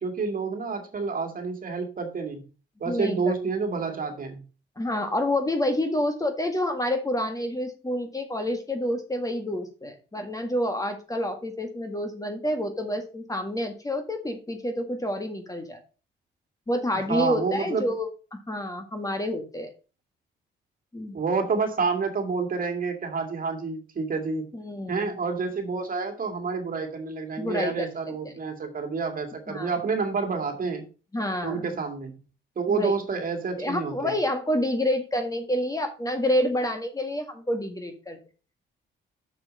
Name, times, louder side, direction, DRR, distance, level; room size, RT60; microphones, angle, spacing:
voice 1, 0.0-2.4 2.8-4.4 17.1-17.9 21.1-24.4 24.9-30.9 31.4-32.2 32.6-34.1, right 4 dB, 45° right, 4 dB, 2.3 m, -29 dB
voice 2, 2.9-3.3 4.8-15.8 16.7-19.7 20.9-21.2 24.5-25.2 27.4-28.1 29.5-29.7 31.1-31.8 32.7-32.9 33.6-38.2, left 1 dB, 15° left, 5 dB, 1.8 m, -28 dB
6.6 x 6.6 x 5.3 m, 0.34 s
cardioid pair, 90°, 20 cm